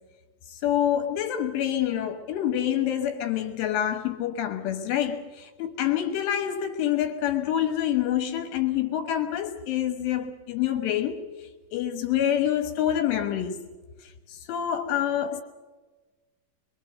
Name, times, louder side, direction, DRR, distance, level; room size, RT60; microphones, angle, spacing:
voice 1, 0.5-13.7 14.0-15.4, left 10 dB, 75° left, 3.6 m, -27 dB
24.5 x 23.5 x 6.5 m
omnidirectional pair, 5.8 m